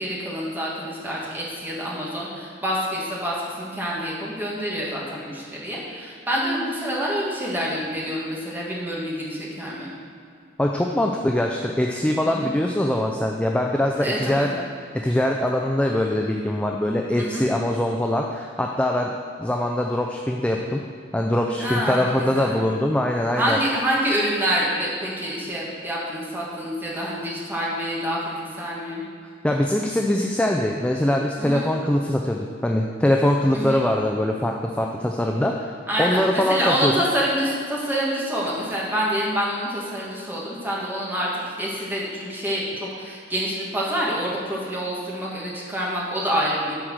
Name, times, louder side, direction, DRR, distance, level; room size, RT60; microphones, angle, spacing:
voice 1, 0.0-9.9 12.2-12.5 14.0-14.5 17.2-17.5 21.6-22.6 23.4-29.0 31.4-31.7 33.5-33.8 35.9-46.7, equal, 10° right, -5 dB, 1.8 m, -27 dB
voice 2, 10.6-14.5 15.0-19.1 19.4-20.8 21.1-23.6 29.4-36.9, left 1 dB, 5° left, 1 dB, 0.4 m, -23 dB
9.7 x 4.8 x 6.3 m, 2.3 s
head